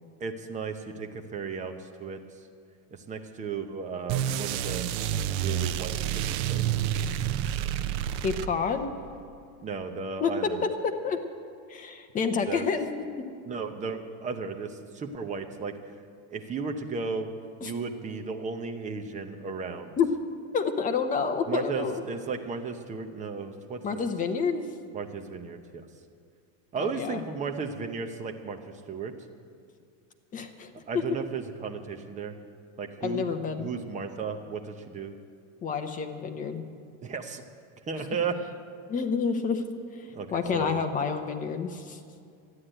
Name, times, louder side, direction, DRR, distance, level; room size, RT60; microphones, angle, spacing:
voice 1, 0.2-2.2 2.9-5.1 5.4-6.6 9.6-10.6 12.5-12.7 13.5-15.8 16.3-17.3 17.6-19.9 21.5-24.1 24.9-25.8 26.7-28.6 28.9-29.1 30.9-32.3 32.8-33.3 33.6-35.1 37.0-37.4 37.9-38.4 40.1-40.8, right 5 dB, 20° right, 5 dB, 0.8 m, -34 dB
sound 1, 4.1-8.9, right 10 dB, 55° right, 0.7 m, -29 dB
voice 2, 8.2-8.9 10.2-10.3 10.8-11.2 11.7-12.9 17.6-17.7 20.0-20.1 20.5-22.0 23.8-24.7 26.8-27.2 30.3-30.7 33.0-33.7 35.6-36.6 38.9-39.6 40.0-42.0, left 5 dB, 20° left, 6 dB, 0.9 m, -29 dB
13.0 x 9.6 x 8.9 m, 2.3 s
supercardioid pair, 160°, 39 cm